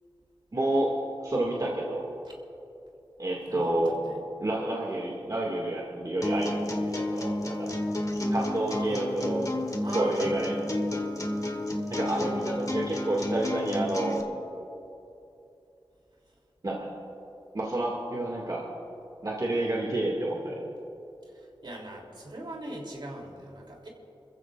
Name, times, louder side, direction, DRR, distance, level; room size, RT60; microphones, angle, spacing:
voice 1, 0.5-0.9 1.2-2.1 3.2-4.0 4.4-7.7 8.3-9.5 9.9-10.6 11.9-14.3 16.6-16.9 17.5-18.7 19.2-20.6, right 1 dB, 45° right, -3 dB, 2.1 m, -29 dB
voice 2, 3.5-4.2 8.7-9.2 9.8-10.4 21.3-23.9, right 1 dB, 60° right, -1 dB, 3.2 m, -40 dB
sound 1, 6.2-14.2, left 1 dB, 40° left, 1.4 m, -31 dB
27.5 x 15.0 x 2.5 m, 2.8 s
wide cardioid pair, 75°, 9 cm